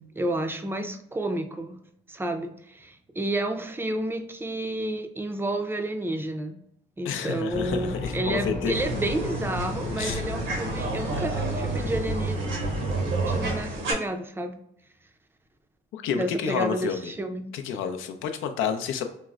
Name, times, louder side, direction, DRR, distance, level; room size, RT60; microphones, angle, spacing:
voice 1, 0.0-1.8 2.1-6.6 7.0-12.4 13.3-14.5 16.2-17.5, right 1 dB, 10° right, 7 dB, 0.4 m, -30 dB
voice 2, 7.0-8.7 10.0-10.2 15.9-17.1 17.5-19.0, left 7 dB, 85° left, 7 dB, 0.5 m, -30 dB
sound 1, 7.5-13.6, right 1 dB, 35° left, 0.8 m, -31 dB
sound 2, 8.7-13.9, right 2 dB, 85° right, 0.9 m, -33 dB
4.4 x 2.1 x 2.4 m, 0.74 s
cardioid pair, 90°, 20 cm